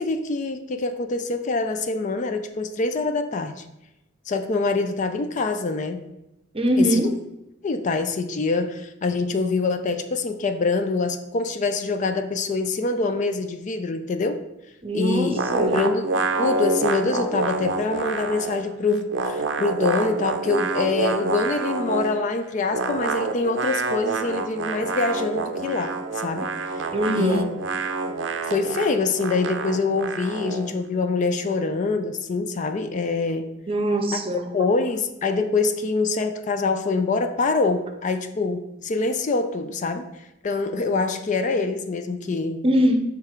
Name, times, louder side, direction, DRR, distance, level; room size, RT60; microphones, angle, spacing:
voice 1, 0.0-3.6 4.3-6.0 6.8-7.0 7.6-14.4 14.9-15.4 15.7-16.0 16.4-26.0 26.2-26.9 27.2-27.4 28.4-33.5 34.1-34.2 34.5-40.1 40.4-42.6, left 3 dB, 40° left, 8 dB, 0.4 m, -25 dB
voice 2, 6.5-7.2 14.8-15.8 26.9-27.6 33.7-34.5 42.6-43.0, equal, 30° right, 5 dB, 0.7 m, -22 dB
sound 1, 15.4-18.7 18.9-22.2 22.7-30.7, right 3 dB, 70° right, 0.5 m, -27 dB
6.8 x 3.5 x 4.4 m, 0.92 s
head